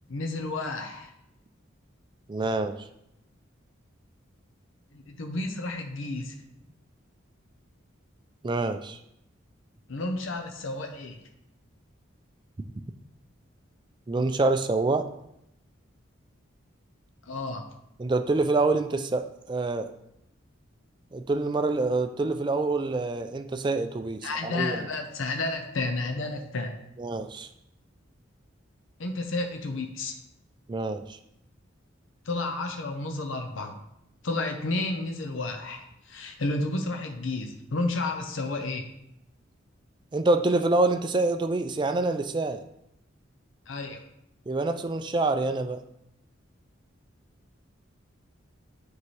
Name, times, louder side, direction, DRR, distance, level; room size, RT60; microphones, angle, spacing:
voice 1, 0.1-1.1 4.9-6.3 9.9-11.2 17.3-17.7 24.2-26.8 29.0-30.2 32.3-33.8 34.2-38.9 43.7-44.0, left 2 dB, 75° left, 5 dB, 0.7 m, -31 dB
voice 2, 2.3-2.8 8.4-9.0 14.1-15.1 18.0-19.9 21.1-24.8 27.0-27.5 30.7-31.2 40.1-42.6 44.5-45.8, right 3 dB, 20° right, 8 dB, 0.3 m, -26 dB
8.4 x 4.6 x 3.2 m, 0.80 s
head